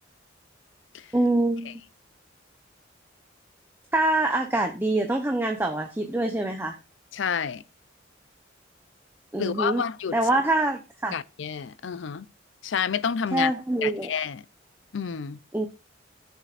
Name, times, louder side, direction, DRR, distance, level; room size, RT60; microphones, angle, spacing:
voice 1, 1.1-1.8 3.9-6.8 9.3-9.8 10.1-11.2 13.3-14.1 15.5-15.7, right 2 dB, 10° right, 0.7 m, -25 dB
voice 2, 7.1-7.6 9.4-10.2 11.1-12.3 12.6-13.5 13.8-14.4 14.9-15.4, left 7 dB, 70° left, 0.5 m, -29 dB
18.5 x 6.7 x 2.5 m
head